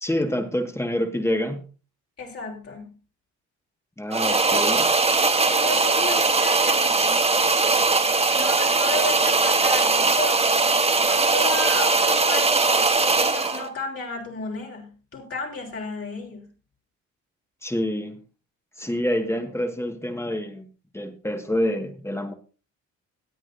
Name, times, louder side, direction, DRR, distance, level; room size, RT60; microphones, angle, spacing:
voice 1, 0.0-1.6 4.0-4.9 17.6-18.2 18.8-20.7 20.9-22.3, left 1 dB, 10° left, 6 dB, 1.7 m, -27 dB
voice 2, 2.2-3.0 4.3-4.6 5.4-7.2 8.3-10.6 11.0-12.9 13.1-16.5, left 4 dB, 50° left, 0 dB, 3.8 m, -33 dB
sound 1, 4.1-13.7, right 3 dB, 20° right, 1.2 m, -20 dB
18.5 x 8.7 x 2.6 m, 0.34 s
cardioid pair, 90°, 30 cm